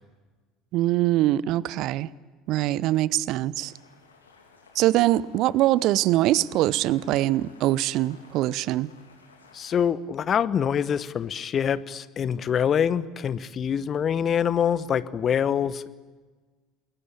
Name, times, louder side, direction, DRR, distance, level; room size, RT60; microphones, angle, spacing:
voice 1, 0.7-2.1 2.5-3.7 4.7-8.9, right 15 dB, 50° right, 21 dB, 0.7 m, -23 dB
sound 1, 3.6-9.9, left 4 dB, 80° left, 3.0 m, -55 dB
voice 2, 9.5-15.9, left 8 dB, 35° left, 16 dB, 1.1 m, -25 dB
27.5 x 22.0 x 9.0 m, 1.4 s
figure-of-eight pair, 65°, 0 cm